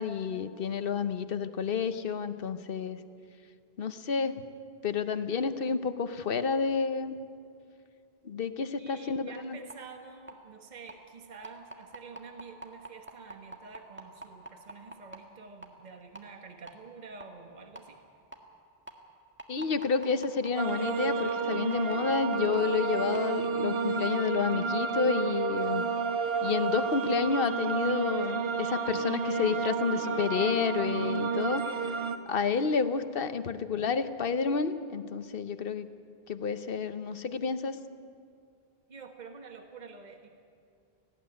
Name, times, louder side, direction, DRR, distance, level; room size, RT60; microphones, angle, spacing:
voice 1, 0.0-3.0 3.8-4.4 4.8-7.2 8.2-9.6 19.5-25.9 26.4-31.6 32.3-35.9 36.3-37.8, left 6 dB, 65° left, 11 dB, 1.1 m, -30 dB
voice 2, 8.8-18.0 38.9-40.3, right 5 dB, 45° right, 5 dB, 1.4 m, -48 dB
sound 1, 9.7-9.8 10.3-10.4 10.9-11.0 11.4-15.2 15.6-15.7 16.2-16.3 16.7-16.8 17.2-17.3 17.8-17.9 18.3-18.4 18.9-19.0 19.4-23.2 23.7-23.8, right 2 dB, 10° right, 1.7 m, -43 dB
sound 2, 20.6-32.2, right 5 dB, 70° right, 1.3 m, -31 dB
18.5 x 16.0 x 9.3 m, 2.4 s
omnidirectional pair, 1.0 m